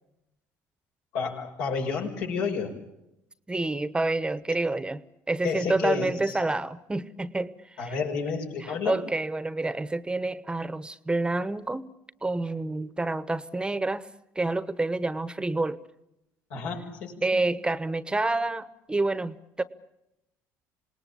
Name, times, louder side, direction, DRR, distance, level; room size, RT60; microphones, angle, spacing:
voice 1, 1.1-2.7 4.5-4.6 5.4-6.4 7.8-9.0 16.5-17.4, left 5 dB, 85° left, 1 dB, 6.3 m, -30 dB
voice 2, 3.5-5.0 5.3-7.5 7.8-8.0 8.6-11.9 12.2-14.1 14.3-15.8 17.2-19.6, right 2 dB, 15° right, 15 dB, 1.1 m, -28 dB
27.0 x 19.0 x 8.6 m, 0.89 s
supercardioid pair, 90°, 7 cm